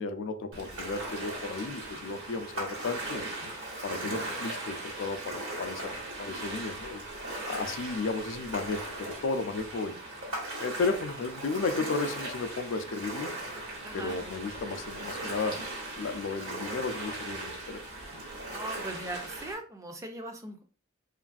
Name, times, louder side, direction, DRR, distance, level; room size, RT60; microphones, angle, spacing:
voice 1, 0.0-3.3 3.8-7.0 7.5-10.0 10.6-13.3 13.9-15.6 15.9-17.8, left 3 dB, 65° left, 9 dB, 0.4 m, -34 dB
Ocean, 0.5-19.5, right 2 dB, 70° right, 1.1 m, -38 dB
voice 2, 13.8-14.2 18.5-20.6, right 1 dB, 15° right, 4 dB, 0.4 m, -39 dB
3.0 x 2.5 x 2.4 m, 0.38 s
head